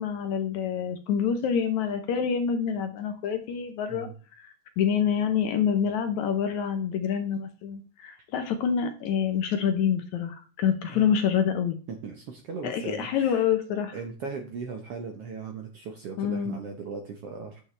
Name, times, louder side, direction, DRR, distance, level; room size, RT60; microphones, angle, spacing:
voice 1, 0.0-4.1 4.4-4.5 4.8-11.8 12.6-14.0 16.2-16.6, left 7 dB, 70° left, 7 dB, 1.9 m, -27 dB
voice 2, 11.9-13.5 13.9-17.6, right 5 dB, 65° right, 3 dB, 1.5 m, -38 dB
8.9 x 8.8 x 3.3 m, 0.36 s
omnidirectional pair, 4.0 m